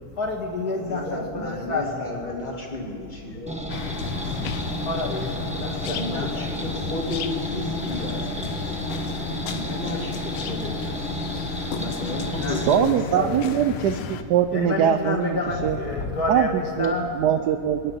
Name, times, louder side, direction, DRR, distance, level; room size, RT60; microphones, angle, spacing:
voice 1, 0.2-2.3 3.3-3.4 3.8-6.5 12.4-12.7 13.1-13.3 14.5-17.1, left 2 dB, 50° left, 0 dB, 2.2 m, -29 dB
voice 2, 0.7-3.6 5.7-13.0 13.3-13.6, left 2 dB, 20° left, -1 dB, 2.4 m, -33 dB
sound 1, 3.5-12.8, equal, 5° right, 1.1 m, -32 dB
sound 2, 3.7-14.2, left 8 dB, 85° left, 1.7 m, -34 dB
voice 3, 12.5-15.8 16.3-17.8, right 9 dB, 70° right, 8 dB, 1.0 m, -22 dB
25.5 x 10.5 x 5.4 m, 2.6 s
omnidirectional pair, 2.3 m